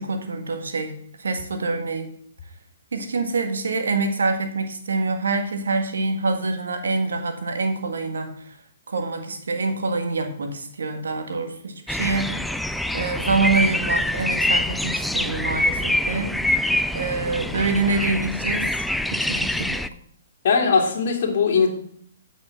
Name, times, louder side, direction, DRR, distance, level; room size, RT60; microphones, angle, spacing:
voice 1, 0.0-2.1 2.9-8.3 8.9-12.4 12.9-16.4 16.9-18.7 19.1-19.9, right 3 dB, 85° right, 6 dB, 1.7 m, -26 dB
sound 1, 11.9-19.9, left 1 dB, ahead, 0.4 m, -25 dB
voice 2, 20.4-21.7, left 5 dB, 60° left, 0 dB, 2.3 m, -19 dB
8.7 x 6.0 x 5.9 m, 0.62 s
hypercardioid pair, 140°, 0 cm